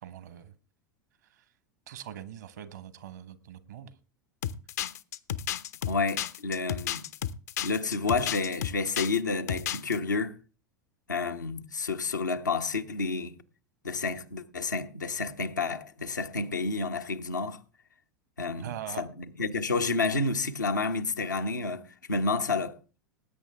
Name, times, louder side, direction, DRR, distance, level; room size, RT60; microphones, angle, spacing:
voice 1, 0.0-0.5 1.3-1.4 1.9-3.9 18.6-19.1, right 11 dB, 70° right, 1.4 m, -42 dB
sound 1, 4.4-9.2 9.5-10.0, left 11 dB, 65° left, 0.8 m, -32 dB
voice 2, 5.9-7.1 7.6-10.3 11.1-13.3 13.8-17.6 18.4-22.8, left 4 dB, 85° left, 1.1 m, -30 dB
19.5 x 8.9 x 3.5 m
figure-of-eight pair, 85°, 10 cm